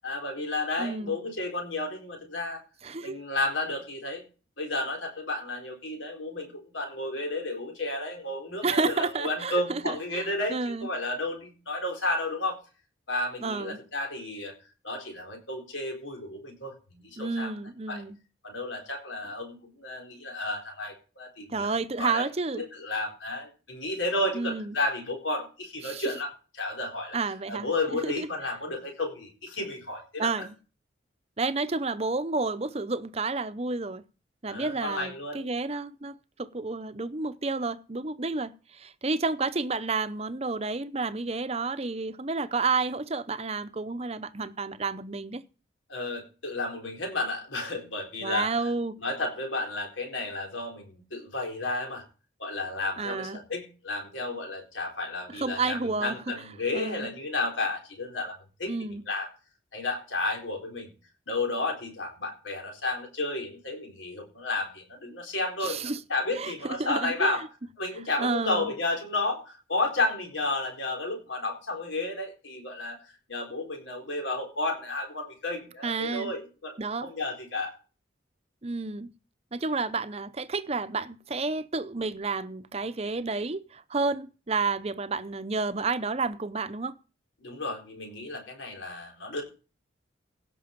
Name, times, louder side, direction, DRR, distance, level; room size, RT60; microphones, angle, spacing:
voice 1, 0.0-2.6 3.0-4.2 4.6-12.6 13.1-14.5 14.8-17.5 17.9-18.0 18.4-22.3 22.6-27.2 27.5-30.5 34.5-35.5 45.9-48.7 49.0-52.0 52.4-58.7 59.1-59.3 59.7-60.9 61.3-67.4 67.8-73.0 73.3-76.8 77.0-77.8 87.4-89.4, left 2 dB, 85° left, 4.2 m, -32 dB
voice 2, 0.8-1.2 2.8-3.2 8.6-10.9 13.4-13.8 17.2-18.2 21.5-22.6 24.3-24.8 25.8-26.0 27.1-27.7 28.0-28.3 30.2-30.6 31.4-34.0 34.4-45.4 48.2-49.0 53.0-53.4 55.4-56.2 56.7-57.1 58.7-59.0 65.6-66.0 66.3-67.3 68.2-68.7 75.8-76.3 76.8-77.1 78.6-79.1 79.5-86.9, right 3 dB, 35° right, 0.7 m, -30 dB
16.5 x 6.2 x 5.2 m
head